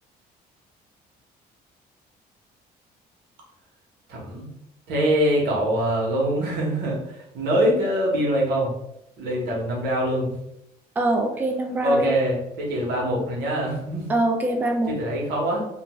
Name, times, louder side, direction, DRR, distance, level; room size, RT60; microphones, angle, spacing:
voice 1, 4.1-4.5 4.9-8.7 9.2-10.3 11.8-14.1 14.9-15.7, equal, 80° right, -3 dB, 1.1 m, -24 dB
voice 2, 11.0-12.1 14.1-15.0, right 1 dB, 10° right, 3 dB, 0.3 m, -23 dB
2.5 x 2.2 x 3.0 m, 0.81 s
cardioid pair, 110°, 17 cm